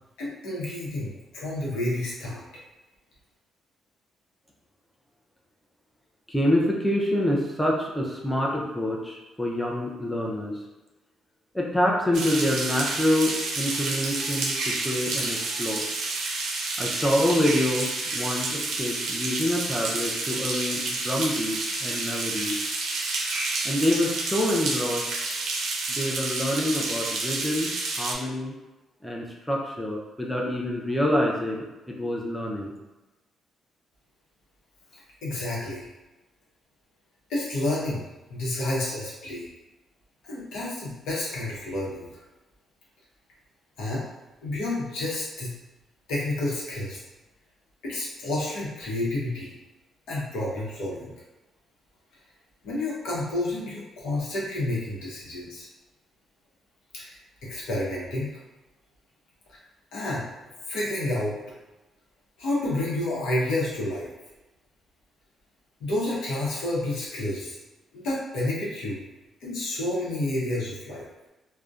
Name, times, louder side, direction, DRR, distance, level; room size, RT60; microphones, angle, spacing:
voice 1, 0.2-2.4 35.2-35.8 37.3-38.0 38.3-39.5 40.2-42.2 43.8-44.0 44.4-45.5 46.1-47.0 47.8-49.5 50.1-51.1 52.6-55.7 56.9-57.1 57.4-58.3 59.5-59.6 59.9-60.3 60.7-61.4 62.4-64.1 65.8-67.6 67.9-69.0 69.4-71.0, left 1 dB, 85° left, -5 dB, 0.7 m, -30 dB
voice 2, 6.3-10.6 11.5-15.8 16.8-22.5 23.6-25.1 26.0-27.7 28.0-28.5 29.0-31.6 32.0-32.7, left 1 dB, 5° left, -2 dB, 0.4 m, -26 dB
sound 1, 12.1-28.1, right 3 dB, 75° right, 0.4 m, -29 dB
2.6 x 2.1 x 2.3 m, 1.0 s
cardioid pair, 90°, 0 cm